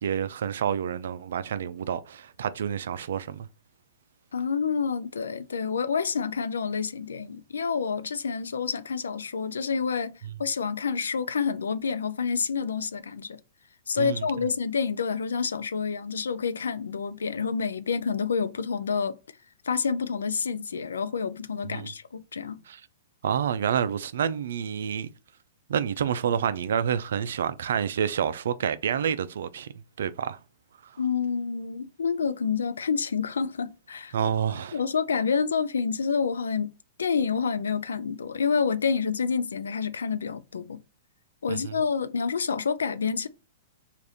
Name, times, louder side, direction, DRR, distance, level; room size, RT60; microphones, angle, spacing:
voice 1, 0.0-3.5 14.0-14.2 21.7-21.9 22.7-22.8 23.2-25.1 25.7-29.7 30.0-30.4 30.8-30.9 34.1-34.8 41.5-41.8, right 8 dB, 70° right, 0.4 m, -28 dB
voice 2, 4.3-13.4 13.9-19.2 19.6-22.6 31.0-34.1 34.7-40.8 41.4-43.3, left 6 dB, 85° left, 0.4 m, -28 dB
3.4 x 2.5 x 4.0 m
hypercardioid pair, 115°, 0 cm